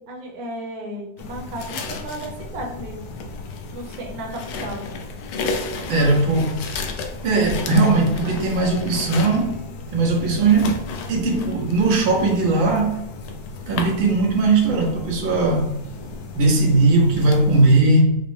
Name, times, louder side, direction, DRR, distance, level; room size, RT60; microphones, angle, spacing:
voice 1, 0.0-3.1 3.7-4.9, right 1 dB, 60° right, 0 dB, 1.1 m, -34 dB
sound 1, 1.2-17.8, left 3 dB, 75° left, 0.8 m, -33 dB
voice 2, 5.9-6.6 7.2-9.6 9.9-10.8 11.1-13.0 13.7-15.8 16.3-18.2, right 3 dB, 85° right, 0 dB, 1.6 m, -18 dB
4.9 x 2.0 x 3.1 m, 0.87 s
omnidirectional pair, 2.1 m